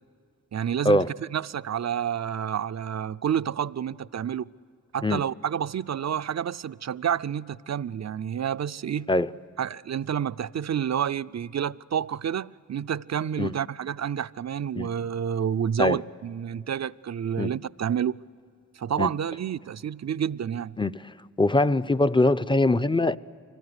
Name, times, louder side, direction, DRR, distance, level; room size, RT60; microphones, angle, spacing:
voice 1, 0.5-4.5 4.9-9.1 9.6-18.2 18.8-20.7, right 8 dB, 60° right, 0.5 m, -29 dB
voice 2, 21.4-23.2, left 2 dB, 15° left, 0.6 m, -22 dB
25.0 x 18.5 x 9.6 m
cardioid pair, 50°, 30 cm